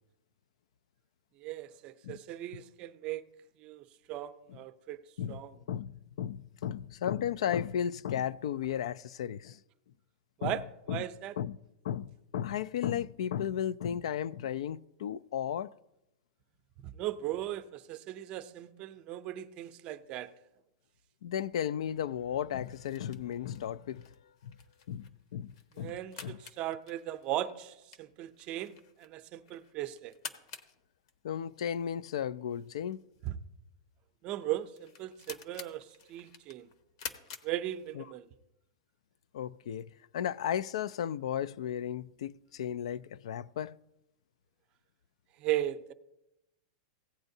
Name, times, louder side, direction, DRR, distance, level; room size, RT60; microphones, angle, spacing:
voice 1, 1.4-3.2 3.6-5.0 5.3-5.5 10.4-10.6 10.9-11.4 16.8-20.3 25.8-30.1 33.2-33.4 34.2-36.7 37.4-38.3 45.4-45.9, right 13 dB, 35° right, 0.5 m, -37 dB
voice 2, 5.7-9.6 10.4-10.6 10.9-11.1 11.4-11.5 11.8-15.7 21.2-24.1 24.4-24.6 24.9-25.9 26.2-26.4 31.2-33.0 38.0-38.1 39.3-39.9 40.1-43.8, left 9 dB, 85° left, 0.3 m, -34 dB
sound 1, 22.6-38.3, left 6 dB, 60° left, 1.0 m, -50 dB
16.5 x 8.8 x 2.7 m
supercardioid pair, 155°, 3 cm